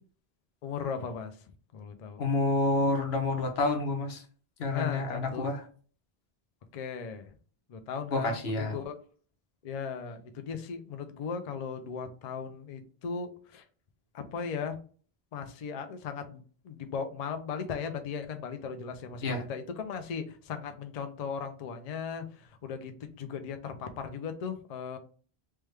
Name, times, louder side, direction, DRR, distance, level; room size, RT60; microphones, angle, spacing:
voice 1, 0.6-1.4 1.7-2.2 4.7-5.5 6.7-7.4 7.7-9.0 9.6-13.6 14.1-14.8 15.3-25.0, left 6 dB, 50° left, 7 dB, 0.5 m, -37 dB
voice 2, 2.2-4.2 4.6-5.6 8.1-8.8 19.2-19.4, left 2 dB, 85° left, 4 dB, 1.0 m, -28 dB
3.4 x 2.2 x 3.1 m, 0.42 s
omnidirectional pair, 1.0 m